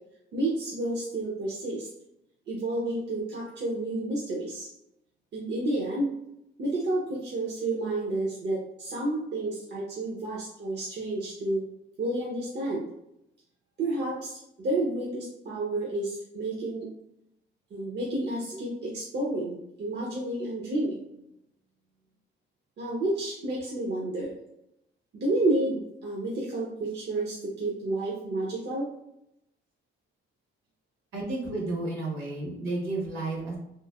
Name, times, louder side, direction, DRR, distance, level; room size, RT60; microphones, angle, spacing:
voice 1, 0.3-1.9 2.5-4.7 5.3-6.1 6.6-11.7 12.0-12.8 13.8-16.9 17.7-21.0 22.8-24.3 25.1-28.9, right 2 dB, 60° right, -4 dB, 0.7 m, -30 dB
voice 2, 31.1-33.6, right 2 dB, 80° right, -2 dB, 1.3 m, -32 dB
3.1 x 2.7 x 2.3 m, 0.83 s
cardioid pair, 90°, 20 cm